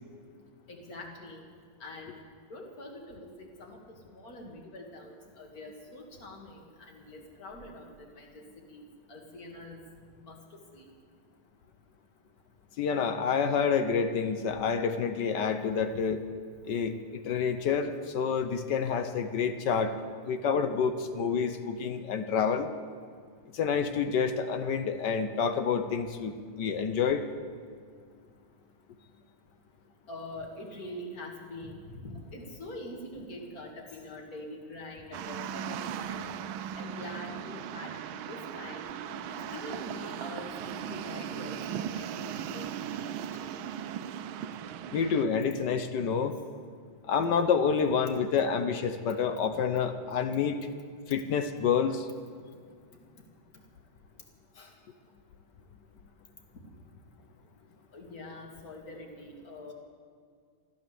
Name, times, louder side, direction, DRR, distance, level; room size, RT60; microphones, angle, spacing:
voice 1, 0.7-1.4 1.8-2.2 2.5-8.4 8.7-9.8 10.2-10.9 17.9-18.0 30.1-36.2 36.8-37.9 38.3-38.9 39.3-43.1 43.4-43.6 54.5-54.8 57.9-59.7, left 1 dB, 45° left, 1 dB, 2.5 m, -44 dB
voice 2, 12.8-16.2 16.6-19.9 20.2-22.7 23.5-27.2 44.9-46.4 47.1-50.6 51.1-52.1, left 6 dB, 65° left, 9 dB, 1.2 m, -28 dB
sound 1, 35.1-45.2, right 9 dB, 75° right, 1.4 m, -38 dB
15.0 x 12.5 x 7.6 m, 2.1 s
omnidirectional pair, 2.4 m